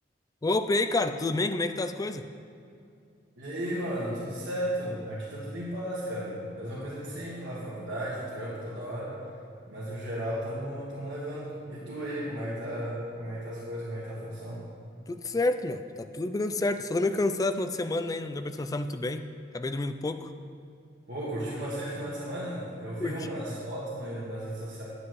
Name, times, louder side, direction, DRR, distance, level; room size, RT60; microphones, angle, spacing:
voice 1, 0.4-2.2 15.1-19.2 19.5-20.3 23.0-23.3, left 2 dB, 20° left, 9 dB, 0.3 m, -29 dB
voice 2, 3.4-9.2 9.7-14.6 21.1-24.8, equal, 80° right, -8 dB, 1.7 m, -35 dB
9.6 x 9.4 x 3.1 m, 2.5 s
head